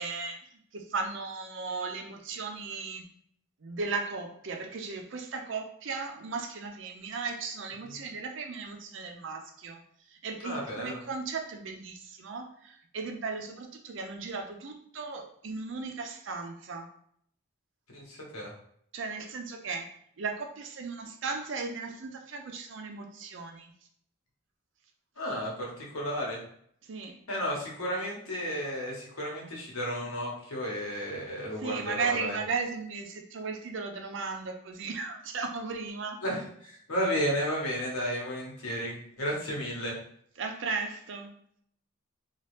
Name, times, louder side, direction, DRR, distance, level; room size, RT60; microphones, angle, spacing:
voice 1, 0.0-3.1 3.6-9.8 10.1-16.9 18.9-19.9 20.2-23.7 26.8-27.2 31.5-36.2 40.4-41.3, right 4 dB, 60° right, 4 dB, 0.5 m, -36 dB
voice 2, 10.4-11.0 17.9-18.5 25.2-26.4 27.3-32.4 36.2-39.9, equal, 90° left, -3 dB, 1.1 m, -33 dB
2.9 x 2.4 x 3.1 m, 0.67 s
head